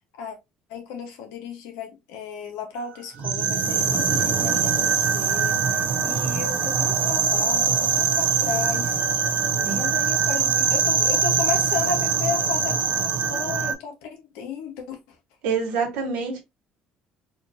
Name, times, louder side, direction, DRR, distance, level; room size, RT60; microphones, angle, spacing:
voice 1, 0.7-9.0 9.7-15.0, left 6 dB, 80° left, 1.1 m, -33 dB
sound 1, 3.2-13.7, right 6 dB, 60° right, 0.7 m, -23 dB
voice 2, 15.4-16.4, right 5 dB, 85° right, 1.3 m, -26 dB
4.3 x 2.5 x 2.6 m
supercardioid pair, 75°, 3 cm